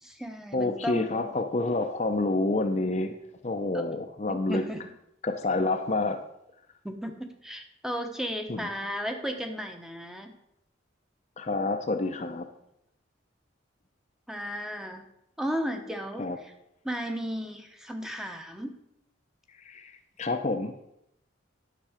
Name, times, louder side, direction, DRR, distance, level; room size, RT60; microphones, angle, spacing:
voice 1, 0.0-1.3 3.7-3.9 4.3-4.8 6.8-10.4 14.3-15.0 15.4-16.3 16.8-18.8, equal, 5° right, 5 dB, 0.9 m, -34 dB
voice 2, 0.5-3.2 3.4-4.6 5.2-6.2 8.5-8.7 11.4-12.5 16.2-16.4 19.6-20.8, left 2 dB, 35° left, 6 dB, 0.6 m, -28 dB
10.0 x 6.8 x 5.0 m, 0.79 s
head